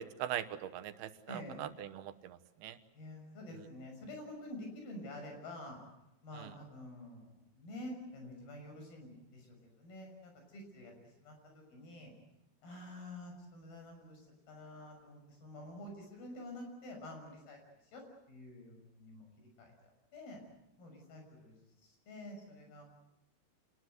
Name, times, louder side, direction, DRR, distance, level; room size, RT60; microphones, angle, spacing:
voice 1, 0.2-2.8 6.4-6.5, right 11 dB, 85° right, 11 dB, 3.1 m, -41 dB
voice 2, 1.3-1.6 2.9-5.8 6.2-7.3 7.6-11.4 11.7-12.1 12.6-17.6 17.9-18.0 18.3-19.3 19.6-20.4 20.8-21.6 21.8-22.8, left 1 dB, 75° left, 3 dB, 8.1 m, -48 dB
27.5 x 20.0 x 8.0 m, 0.89 s
omnidirectional pair, 4.3 m